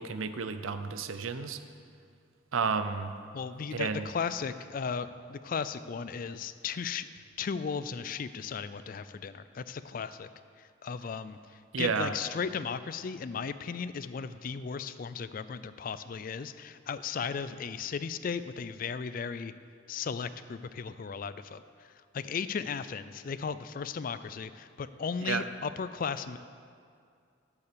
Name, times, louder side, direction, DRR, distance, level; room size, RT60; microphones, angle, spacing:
voice 1, 0.0-1.6 2.5-3.1 3.7-4.1 11.7-12.1 25.2-25.4, right 5 dB, 85° right, 10 dB, 0.6 m, -31 dB
voice 2, 3.3-10.3 10.6-19.5 19.9-26.4, left 6 dB, 45° left, 13 dB, 0.3 m, -36 dB
9.6 x 7.2 x 6.8 m, 2.3 s
head